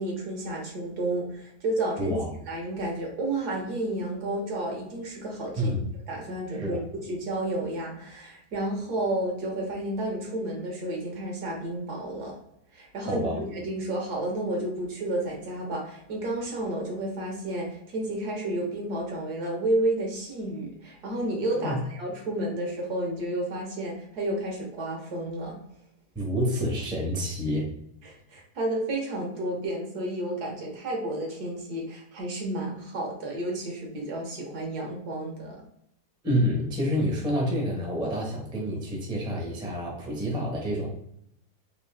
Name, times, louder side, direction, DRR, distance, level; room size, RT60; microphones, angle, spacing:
voice 1, 0.0-2.2 2.5-5.7 6.1-6.8 7.1-12.4 12.7-25.6 28.0-35.6, right 1 dB, 70° right, -1 dB, 1.6 m, -31 dB
voice 2, 2.0-2.3 5.6-5.8 6.5-6.9 13.1-13.4 21.6-21.8 26.1-27.7 36.2-40.9, equal, 5° right, -2 dB, 0.6 m, -28 dB
3.7 x 2.6 x 3.3 m, 0.75 s
omnidirectional pair, 1.8 m